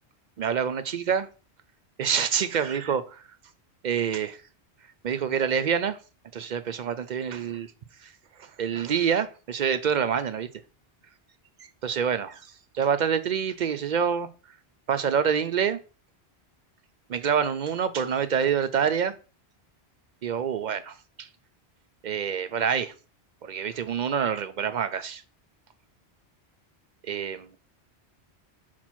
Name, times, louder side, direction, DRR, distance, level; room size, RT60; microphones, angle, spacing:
voice 1, 0.4-1.3 2.0-3.2 3.8-4.4 5.0-6.0 6.3-7.7 8.6-10.5 11.8-12.4 12.7-14.3 14.9-15.8 17.1-19.1 20.2-21.3 22.0-22.9 23.4-25.2 27.1-27.6, right 7 dB, 55° right, 0.5 m, -26 dB
5.8 x 4.3 x 4.4 m
omnidirectional pair, 1.1 m